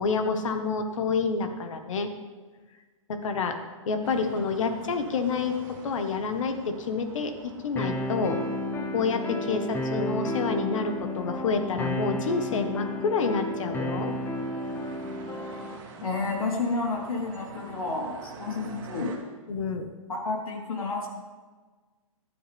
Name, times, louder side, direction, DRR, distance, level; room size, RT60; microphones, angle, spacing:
voice 1, 0.0-2.1 3.1-3.6 3.8-8.4 8.9-14.2 19.5-19.9, left 4 dB, 65° left, 7 dB, 1.5 m, -28 dB
sound 1, 4.0-19.2, right 4 dB, 35° right, 2.9 m, -47 dB
sound 2, 7.8-15.8, left 1 dB, 10° left, 0.8 m, -32 dB
voice 2, 16.0-19.1 20.1-21.1, left 3 dB, 90° left, -2 dB, 3.9 m, -30 dB
14.5 x 11.5 x 3.6 m, 1.4 s
hypercardioid pair, 155°, 18 cm